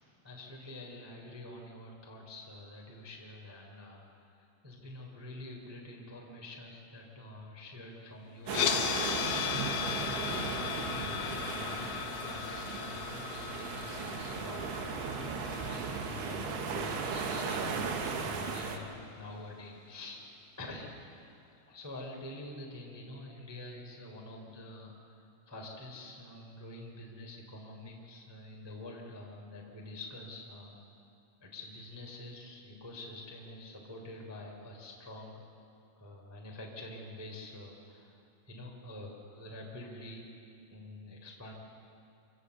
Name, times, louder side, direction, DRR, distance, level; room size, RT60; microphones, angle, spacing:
voice 1, 0.2-4.3 4.6-12.0 12.2-20.2 20.6-21.0 21.7-25.2 25.5-30.7 31.4-35.4 36.0-38.2 38.5-40.3 40.7-41.5, left 1 dB, 5° right, -1 dB, 1.9 m, -47 dB
sound 1, 8.5-18.6, left 10 dB, 75° left, 3.2 m, -37 dB
sound 2, 8.5-18.8, right 5 dB, 65° right, 3.1 m, -36 dB
25.0 x 16.5 x 8.1 m, 2.5 s
omnidirectional pair, 5.7 m